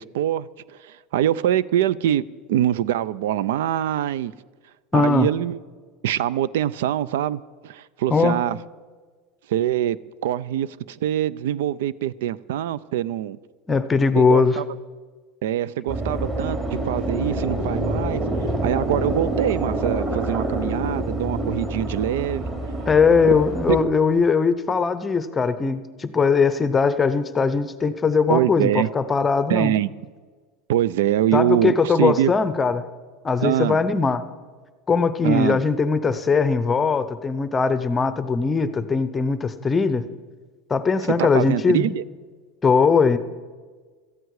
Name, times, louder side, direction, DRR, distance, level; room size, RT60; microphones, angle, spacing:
voice 1, 0.0-2.2 2.5-4.3 4.9-5.6 6.0-8.6 9.5-13.4 14.2-14.6 15.4-18.2 18.6-22.4 23.7-23.8 28.3-28.9 29.5-29.9 30.7-32.3 33.4-33.8 35.2-35.6 41.2-42.0, right 11 dB, 90° right, 21 dB, 0.4 m, -24 dB
voice 2, 4.9-5.3 8.1-8.4 13.7-14.6 22.9-29.7 31.3-32.8 33.2-34.2 34.9-40.0 40.7-41.9 42.6-43.2, left 5 dB, 15° left, 12 dB, 0.7 m, -20 dB
sound 1, 15.9-23.8, right 1 dB, 30° right, 3.5 m, -27 dB
17.5 x 14.0 x 4.8 m, 1.4 s
supercardioid pair, 160°, 0 cm